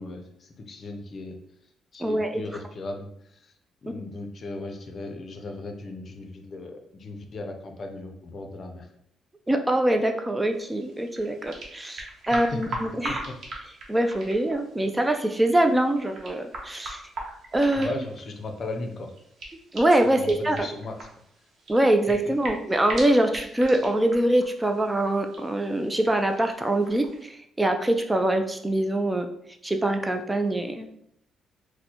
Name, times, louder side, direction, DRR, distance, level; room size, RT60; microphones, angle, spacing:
voice 1, 0.0-1.4 1.9-3.5 3.8-8.9 12.3-12.8 13.1-13.6 17.8-19.1 20.0-21.1 22.4-22.5, left 2 dB, 50° left, 4 dB, 0.5 m, -37 dB
voice 2, 2.0-2.4 3.9-4.0 9.5-13.2 13.9-17.0 17.5-17.9 19.7-20.7 21.7-29.3 29.6-30.9, right 1 dB, 15° right, 5 dB, 0.3 m, -24 dB
sound 1, 10.5-27.3, right 2 dB, 60° right, 0.8 m, -41 dB
4.2 x 2.1 x 2.8 m, 0.71 s
cardioid pair, 90°, 0 cm